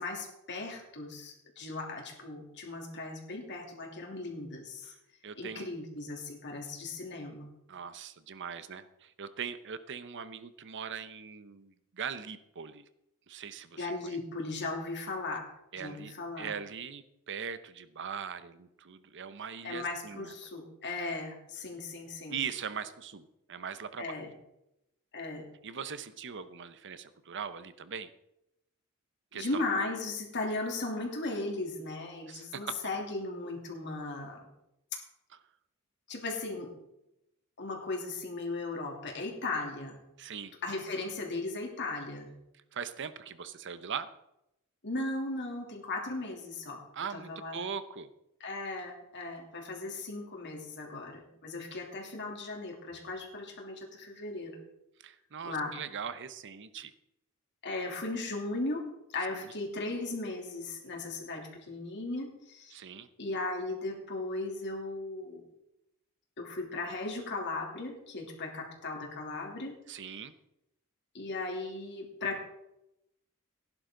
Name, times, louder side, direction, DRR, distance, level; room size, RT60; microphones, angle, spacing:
voice 1, 0.0-4.9 5.4-7.5 13.7-15.5 15.7-16.5 19.6-22.3 24.0-24.3 25.1-25.5 29.3-34.4 34.9-35.0 36.1-36.7 37.6-40.0 40.6-42.3 44.8-46.8 47.1-47.6 48.4-54.6 55.4-55.8 57.6-58.8 59.1-62.8 63.2-65.4 66.4-69.8 71.1-72.4, left 2 dB, 55° left, 1 dB, 3.0 m, -37 dB
voice 2, 5.2-5.7 7.7-12.8 13.3-14.2 15.7-20.3 22.3-24.1 25.6-28.1 29.3-29.6 32.3-32.8 40.2-40.5 42.7-44.1 46.9-48.1 55.0-56.9 59.3-59.5 62.7-63.1 69.9-70.3, right 7 dB, 55° right, 13 dB, 0.8 m, -40 dB
17.0 x 11.0 x 3.9 m, 0.85 s
head